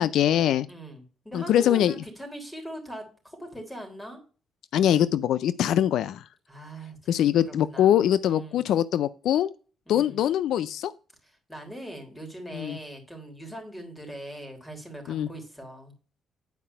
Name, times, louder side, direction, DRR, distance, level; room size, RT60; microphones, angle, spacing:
voice 1, 0.0-0.7 1.3-1.9 4.7-6.2 7.1-9.5 9.9-10.9 12.5-12.8 15.1-15.3, left 11 dB, 80° left, 17 dB, 0.4 m, -23 dB
voice 2, 0.7-4.2 6.5-7.9 8.2-8.7 9.9-10.2 11.2-15.9, right 1 dB, 10° left, 4 dB, 3.6 m, -41 dB
9.4 x 4.8 x 5.5 m, 0.37 s
cardioid pair, 90°, 0 cm